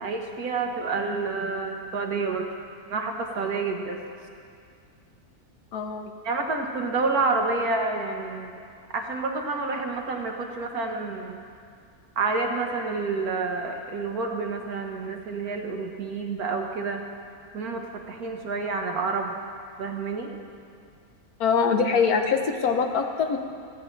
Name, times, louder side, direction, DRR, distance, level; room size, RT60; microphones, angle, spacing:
voice 1, 0.0-2.5 2.9-4.0 6.2-8.6 8.9-11.4 12.2-17.0 17.5-19.4 19.8-20.3, right 3 dB, 75° right, 2 dB, 1.7 m, -29 dB
voice 2, 5.7-6.1 21.4-23.4, left 5 dB, 80° left, 5 dB, 1.5 m, -23 dB
27.0 x 9.4 x 3.3 m, 2.3 s
omnidirectional pair, 1.6 m